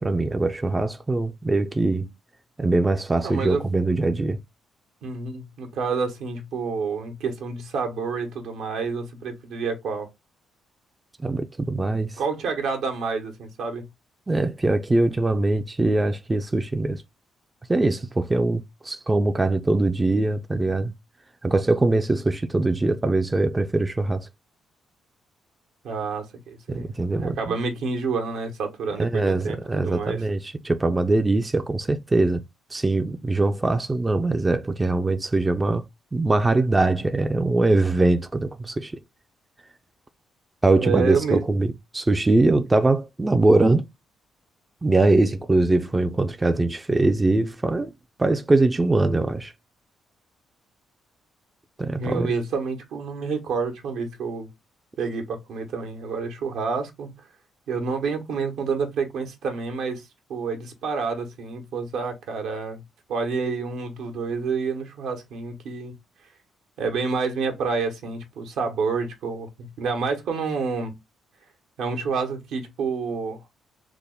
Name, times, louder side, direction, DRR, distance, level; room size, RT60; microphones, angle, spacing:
voice 1, 0.0-2.1 2.6-4.4 11.2-12.2 14.3-17.0 17.7-20.9 21.4-24.3 26.7-27.5 29.0-32.4 32.7-35.8 36.1-38.9 40.6-43.9 44.8-47.9 48.2-49.5 51.8-52.3, right 2 dB, 20° right, 0.4 m, -22 dB
voice 2, 3.2-3.7 5.0-10.1 12.2-13.9 25.8-30.2 40.7-41.4 52.0-54.5 55.0-57.1 57.7-62.8 63.1-66.0 66.8-70.9 71.8-73.4, right 5 dB, 80° right, 1.0 m, -28 dB
3.4 x 2.1 x 3.7 m
cardioid pair, 90°, 0 cm